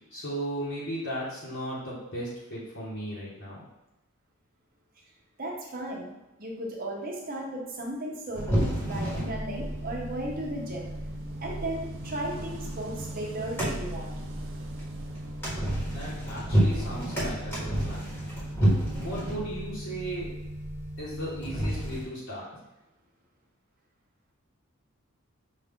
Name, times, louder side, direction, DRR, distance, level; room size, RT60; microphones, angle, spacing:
voice 1, 0.1-3.6 15.9-18.1 19.0-20.4 21.0-22.6, right 1 dB, 55° left, -8 dB, 1.2 m, -36 dB
voice 2, 5.4-6.1 6.4-10.9 11.4-14.1, right 1 dB, 40° right, -2 dB, 0.9 m, -35 dB
sound 1, 8.3-22.0, right 1 dB, 10° left, 1.3 m, -31 dB
Wind / Waves surf, 8.3-18.3, right 2 dB, 60° right, 0.5 m, -47 dB
5.4 x 2.6 x 3.6 m, 1.0 s
head